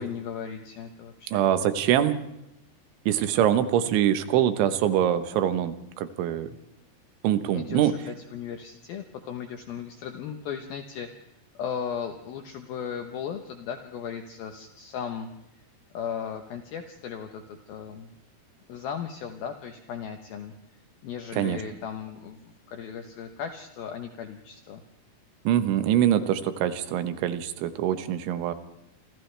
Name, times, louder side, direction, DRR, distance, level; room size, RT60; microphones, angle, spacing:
voice 1, 0.0-1.5 7.5-15.3 15.9-18.1 18.7-24.8, left 7 dB, 70° left, 5 dB, 2.5 m, -37 dB
voice 2, 1.3-2.2 3.1-6.5 7.2-7.9 21.4-21.6 25.5-28.5, right 11 dB, 85° right, 10 dB, 3.6 m, -24 dB
29.5 x 26.0 x 3.4 m, 0.87 s
omnidirectional pair, 5.3 m